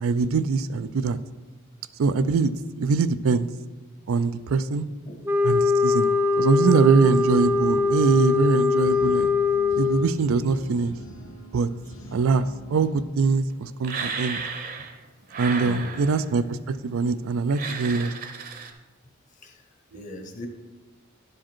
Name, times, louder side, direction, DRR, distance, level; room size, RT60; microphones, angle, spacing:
voice 1, 0.0-1.2 2.0-2.5 2.8-3.5 4.1-4.9 5.4-9.3 9.7-11.0 11.5-11.7 12.1-14.4 15.4-18.1, right 4 dB, 85° right, 13 dB, 0.4 m, -23 dB
sound 1, 5.2-10.1, left 4 dB, 10° right, 0.4 m, -22 dB
sound 2, 6.7-13.0, equal, 85° left, 1.6 m, -45 dB
sound 3, 13.8-15.0 15.3-16.4 17.5-18.7, right 5 dB, 45° right, 0.8 m, -34 dB
voice 2, 15.6-16.0 19.4-19.6 19.9-20.5, left 1 dB, 40° left, 4 dB, 1.1 m, -39 dB
11.0 x 4.9 x 4.4 m, 1.2 s
head